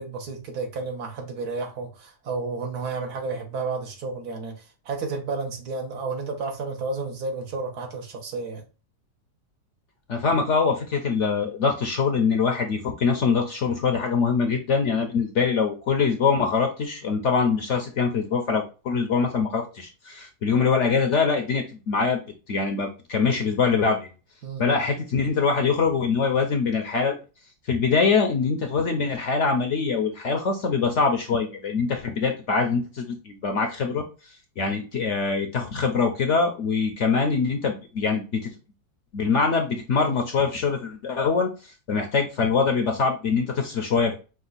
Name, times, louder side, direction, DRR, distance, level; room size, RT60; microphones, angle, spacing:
voice 1, 0.0-8.6 24.4-24.7 40.0-40.2, right 3 dB, 70° right, 1.5 m, -32 dB
voice 2, 10.1-22.2 22.5-24.1 24.6-27.2 27.7-34.0 34.6-38.5 39.1-44.2, left 5 dB, 60° left, 0.8 m, -23 dB
5.2 x 2.4 x 3.9 m
omnidirectional pair, 1.8 m